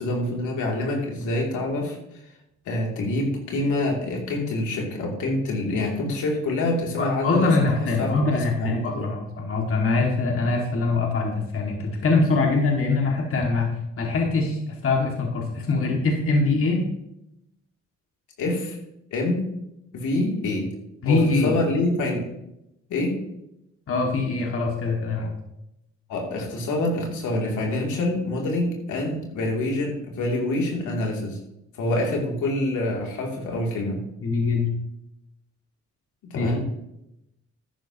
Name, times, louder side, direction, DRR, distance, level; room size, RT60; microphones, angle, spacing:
voice 1, 0.0-2.0 2.7-7.7 8.0-8.1 8.6-9.1 18.4-18.8 19.1-19.4 19.9-20.7 21.0-22.3 22.9-23.1 26.1-31.4 31.7-34.0 36.3-36.6, left 2 dB, 80° left, -1 dB, 3.0 m, -26 dB
voice 2, 7.0-13.7 14.0-16.8 21.0-21.5 23.9-25.3 34.2-34.7 36.3-36.5, left 3 dB, 45° left, 0 dB, 2.3 m, -23 dB
12.5 x 10.5 x 3.0 m, 0.85 s
cardioid pair, 90°, 30 cm